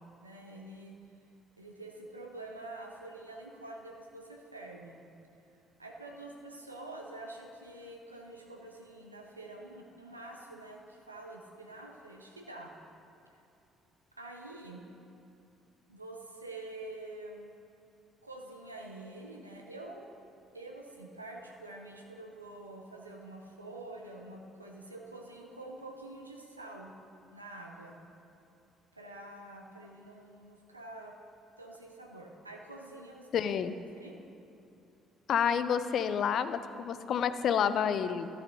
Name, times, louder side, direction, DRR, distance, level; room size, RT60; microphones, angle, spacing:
voice 1, 0.2-1.0 1.6-5.0 5.8-12.7 13.3-13.4 14.2-14.8 15.9-17.5 18.2-20.1 20.5-26.9 27.3-28.0 28.9-31.2 31.6-33.5 34.0-34.2, right 2 dB, 90° right, 0 dB, 0.5 m, -47 dB
voice 2, 33.3-33.7 35.3-38.3, left 8 dB, 50° left, 12 dB, 0.4 m, -29 dB
12.0 x 6.6 x 3.9 m, 2.7 s
figure-of-eight pair, 50°, 0 cm